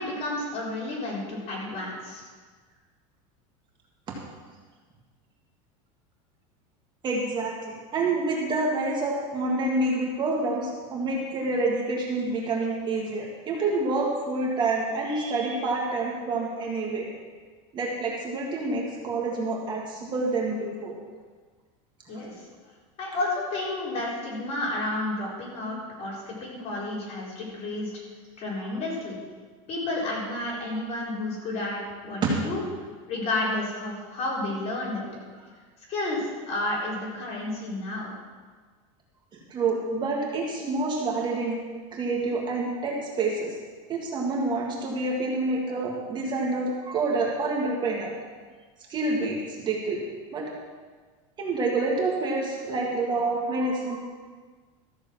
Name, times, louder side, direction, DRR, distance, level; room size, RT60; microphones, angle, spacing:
voice 1, 0.0-2.2 22.1-22.5 23.0-27.9 28.4-29.2 29.7-32.6 33.1-35.1 35.9-38.1, left 2 dB, 40° left, -4 dB, 4.2 m, -31 dB
voice 2, 7.0-7.5 7.9-17.1 17.7-20.9 32.2-32.3 39.5-41.6 41.9-43.6 43.9-48.1 48.9-50.0 50.3-50.7 51.4-54.0, right 3 dB, 25° right, -2 dB, 1.8 m, -27 dB
14.0 x 6.5 x 7.4 m, 1.5 s
supercardioid pair, 155°, 17 cm